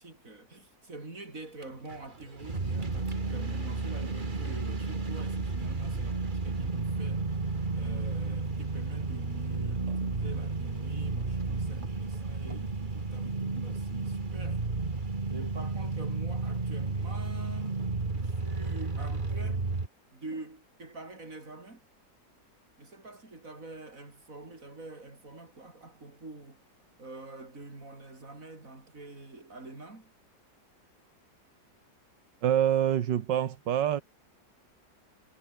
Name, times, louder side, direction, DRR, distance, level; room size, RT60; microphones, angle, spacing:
voice 1, 0.0-7.3 7.7-14.6 15.3-17.8 18.1-19.6 20.1-21.9 22.8-26.7 27.0-30.1, right 2 dB, 45° right, 5.4 m, -46 dB
sound 1, 1.6-1.7 1.9-19.9, right 3 dB, 25° right, 2.0 m, -32 dB
voice 2, 32.4-34.0, right 10 dB, 85° right, 1.8 m, -26 dB
omnidirectional pair, 1.9 m